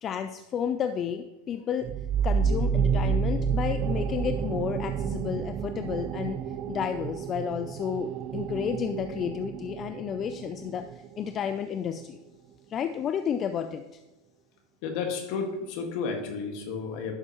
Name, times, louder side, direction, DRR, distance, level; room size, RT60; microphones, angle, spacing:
voice 1, 0.0-1.9 2.2-6.4 6.7-12.2 12.7-13.8, left 8 dB, 35° left, 9 dB, 0.4 m, -31 dB
sound 1, 1.8-11.2, right 6 dB, 45° right, 0.4 m, -30 dB
voice 2, 14.8-17.1, left 5 dB, 60° left, 4 dB, 1.8 m, -32 dB
11.0 x 6.6 x 3.0 m, 1.1 s
supercardioid pair, 115°, 0 cm